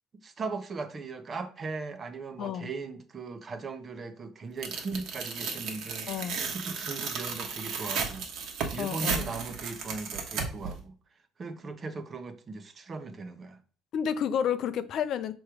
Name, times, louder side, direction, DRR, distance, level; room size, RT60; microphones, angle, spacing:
voice 1, 0.2-6.1 6.5-8.3 8.7-10.9 11.4-13.6, right 4 dB, 25° right, 0.8 m, -38 dB
voice 2, 2.4-2.7 6.1-6.4 8.8-9.3 13.9-15.3, left 8 dB, 45° left, 0.6 m, -30 dB
Tearing, 4.6-10.7, right 5 dB, 55° right, 1.3 m, -34 dB
6.3 x 3.1 x 4.8 m
cardioid pair, 145°, 0 cm